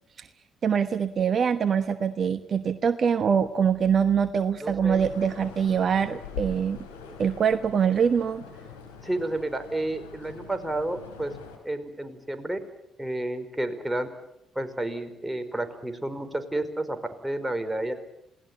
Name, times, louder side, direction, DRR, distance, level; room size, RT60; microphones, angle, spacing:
voice 1, 0.6-6.8 7.2-8.4, right 7 dB, 50° right, 11 dB, 1.1 m, -24 dB
voice 2, 4.6-5.0 9.0-11.4 11.6-12.6 13.0-14.1 14.5-17.9, right 1 dB, 10° right, 8 dB, 4.8 m, -31 dB
sound 1, 4.9-11.6, left 6 dB, 90° left, 4.2 m, -43 dB
28.0 x 18.5 x 9.0 m, 0.82 s
hypercardioid pair, 50°, 0 cm